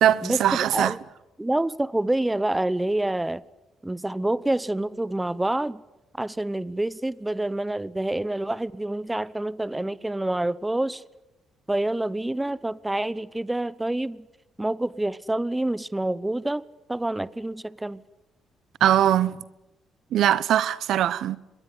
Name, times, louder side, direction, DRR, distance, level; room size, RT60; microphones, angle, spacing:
voice 1, 0.0-0.9 18.8-19.4 20.1-21.4, right 11 dB, 75° right, 1.0 m, -21 dB
voice 2, 1.4-3.4 3.8-5.8 6.2-11.0 11.7-14.3 14.6-16.6 16.9-18.0, right 1 dB, 10° right, 0.9 m, -27 dB
26.0 x 22.0 x 9.7 m
cardioid pair, 90°, 0 cm